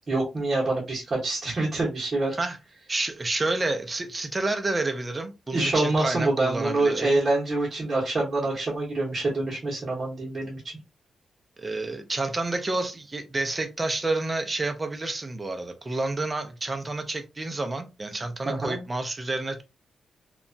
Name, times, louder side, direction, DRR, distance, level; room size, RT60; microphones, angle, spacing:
voice 1, 0.1-2.3 5.5-10.6 18.4-18.8, right 2 dB, 35° right, 0.8 m, -26 dB
voice 2, 2.9-7.2 11.6-19.6, right 2 dB, 20° right, 0.4 m, -29 dB
2.8 x 2.2 x 2.6 m
wide cardioid pair, 165°, 0 cm